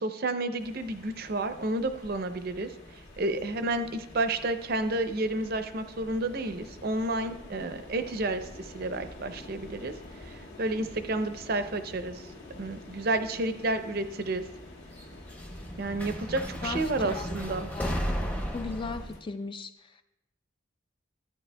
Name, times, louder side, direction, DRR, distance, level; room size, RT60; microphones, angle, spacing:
voice 1, 0.0-2.7 3.2-9.9 10.2-12.3 12.6-14.4 15.8-17.7, right 2 dB, 50° right, 9 dB, 0.5 m, -31 dB
sound 1, 0.6-19.2, left 2 dB, 60° left, 1.8 m, -48 dB
sound 2, 9.2-11.2 11.4-12.1 13.2-13.3 15.0-19.1, equal, 10° left, 0.7 m, -35 dB
voice 2, 16.6-18.0 18.5-20.0, left 4 dB, 25° left, 8 dB, 0.4 m, -38 dB
13.5 x 9.4 x 2.2 m, 0.93 s
head